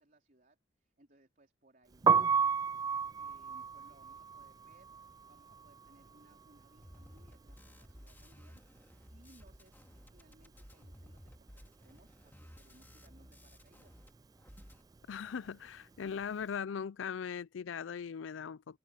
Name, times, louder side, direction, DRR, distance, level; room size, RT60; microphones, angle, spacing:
voice 1, 0.0-2.3 3.2-14.0, right 1 dB, 45° right, 4.0 m, -65 dB
Piano, 1.9-7.9 8.1-9.7 10.0-16.4, right 6 dB, 20° right, 0.3 m, -34 dB
sound 1, 6.8-14.1 14.3-14.8, equal, 10° left, 2.4 m, -56 dB
voice 2, 15.1-18.8, left 7 dB, 85° left, 0.4 m, -39 dB
open air
head